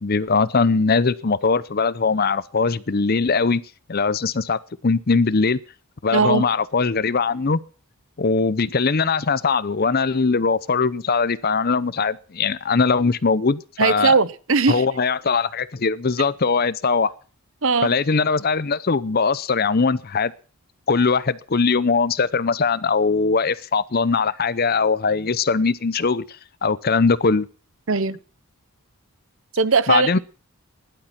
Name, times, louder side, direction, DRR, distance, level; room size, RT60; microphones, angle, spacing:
voice 1, 0.0-3.6 3.9-5.6 6.0-7.6 8.2-14.1 14.7-17.1 17.8-20.3 20.9-26.2 26.6-27.5 29.9-30.2, left 4 dB, 45° left, 0.6 m, -21 dB
voice 2, 6.1-6.5 13.8-14.8 17.6-17.9 27.9-28.2 29.5-30.2, right 4 dB, 60° right, 0.8 m, -19 dB
16.0 x 11.5 x 5.9 m
head